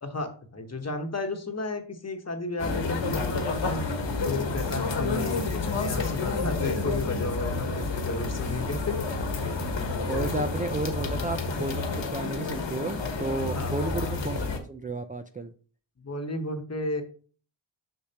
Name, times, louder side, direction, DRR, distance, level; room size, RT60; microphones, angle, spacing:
voice 1, 0.0-3.9 4.2-9.0 9.4-10.3 13.5-13.7 16.0-17.0, left 2 dB, 30° left, 5 dB, 1.1 m, -33 dB
sound 1, 2.6-14.6, left 3 dB, 65° left, 1.3 m, -30 dB
voice 2, 5.0-5.3 7.6-7.9 10.1-15.5, right 2 dB, 20° right, 7 dB, 0.4 m, -33 dB
6.7 x 6.4 x 2.9 m, 0.41 s
wide cardioid pair, 125°, 48 cm